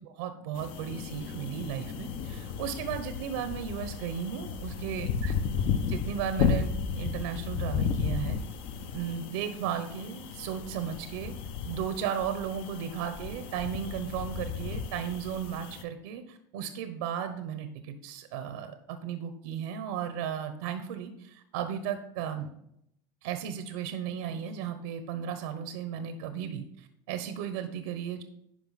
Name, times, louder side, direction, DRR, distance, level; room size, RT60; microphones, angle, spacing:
voice 1, 0.0-5.3 5.9-8.4 8.9-11.3 11.6-22.5 23.2-28.2, right 8 dB, 85° right, 8 dB, 0.9 m, -35 dB
sound 1, 0.5-15.8, left 6 dB, 55° left, 0.8 m, -34 dB
11.0 x 5.0 x 4.1 m, 0.76 s
supercardioid pair, 125°, 11 cm